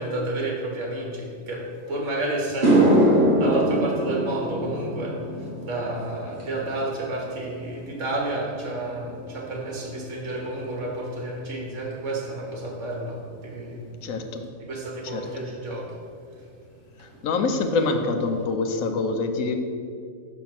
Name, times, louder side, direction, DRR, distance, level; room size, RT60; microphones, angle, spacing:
voice 1, 0.0-2.9 3.4-5.2 5.6-14.1 14.7-15.9, right 2 dB, 60° right, -1 dB, 1.7 m, -30 dB
Piano key crash, 1.9-2.0 2.4-10.9 11.2-11.7 15.3-15.4 17.0-17.1 17.4-17.5 17.8-18.3, right 1 dB, 35° right, 1.6 m, -25 dB
voice 2, 14.0-14.4 15.0-15.3 17.2-19.5, left 3 dB, 80° left, 5 dB, 1.1 m, -25 dB
5.6 x 5.4 x 5.9 m, 2.3 s
omnidirectional pair, 1.5 m